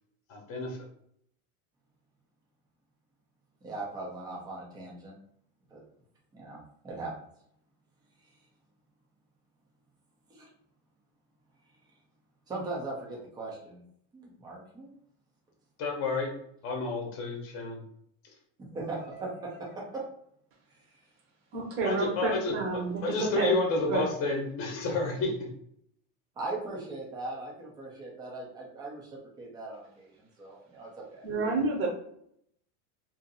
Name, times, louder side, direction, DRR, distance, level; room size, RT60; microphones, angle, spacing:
voice 1, 0.3-0.9 15.8-16.3 16.6-17.8 21.8-25.5, left 3 dB, 30° left, 1 dB, 0.8 m, -30 dB
voice 2, 3.6-5.1 5.7-5.8 6.3-6.6 6.8-7.1 10.3-10.5 12.5-13.8 14.1-14.9 18.7-20.0 26.4-31.3, right 2 dB, 10° right, -3 dB, 0.4 m, -39 dB
voice 3, 21.5-23.5 23.9-24.1 31.2-31.9, right 4 dB, 30° right, 0 dB, 0.8 m, -29 dB
2.7 x 2.6 x 3.9 m, 0.70 s
supercardioid pair, 165°, 45 cm